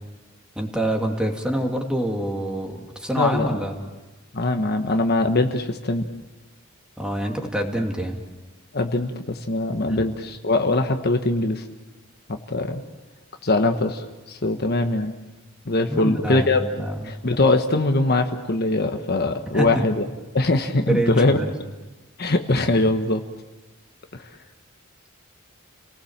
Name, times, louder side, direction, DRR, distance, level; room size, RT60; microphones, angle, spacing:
voice 1, 0.6-3.8 7.0-8.2 9.9-10.0 15.9-17.1 19.5-19.8 20.9-21.5, right 1 dB, 5° right, 2 dB, 2.5 m, -26 dB
voice 2, 3.2-3.6 4.3-6.0 8.7-11.6 12.3-12.8 13.4-15.1 15.6-16.6 17.1-20.1 20.3-21.4 22.2-23.2, left 2 dB, 50° left, 6 dB, 1.3 m, -22 dB
30.0 x 19.0 x 7.3 m, 1.2 s
head